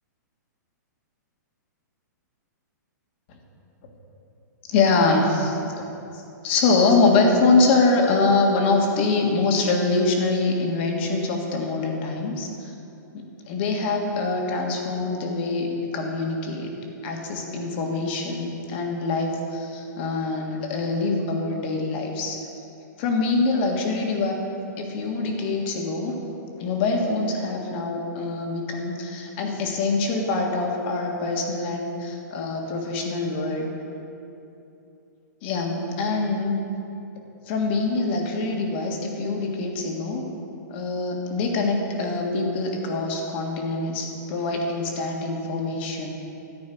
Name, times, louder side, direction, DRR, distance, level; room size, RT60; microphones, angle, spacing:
voice 1, 4.7-5.9 6.4-12.5 13.1-16.7 17.0-22.4 23.0-24.3 24.8-26.1 26.6-33.7 35.4-36.6 37.5-40.3 40.7-46.2, left 3 dB, 35° left, 1 dB, 1.7 m, -24 dB
13.5 x 5.5 x 9.3 m, 2.8 s
hypercardioid pair, 165°, 10 cm